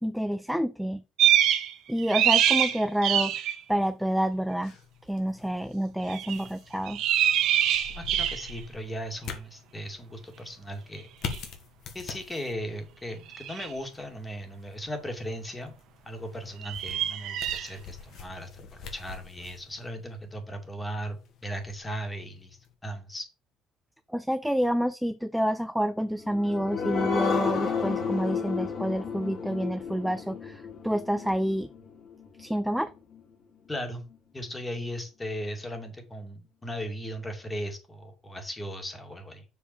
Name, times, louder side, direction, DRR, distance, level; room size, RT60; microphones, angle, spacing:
voice 1, 0.0-1.0 1.9-4.7 5.1-7.0 24.1-31.7 32.4-32.9, equal, ahead, 0.5 m, -28 dB
sound 1, 1.2-1.7 2.0-3.6 6.1-6.4 6.9-8.6 11.3-11.4 13.3-13.7 16.6-17.7, right 10 dB, 65° right, 1.4 m, -24 dB
sound 2, 4.7-22.7, left 6 dB, 60° left, 2.1 m, -45 dB
voice 2, 7.9-11.1 11.9-15.7 16.0-23.3 33.7-34.0 34.3-39.5, equal, 15° left, 2.5 m, -37 dB
sound 3, 26.1-33.2 33.7-33.8 34.1-34.2, left 6 dB, 45° left, 4.0 m, -32 dB
6.9 x 4.7 x 6.9 m
cardioid pair, 110°, 0 cm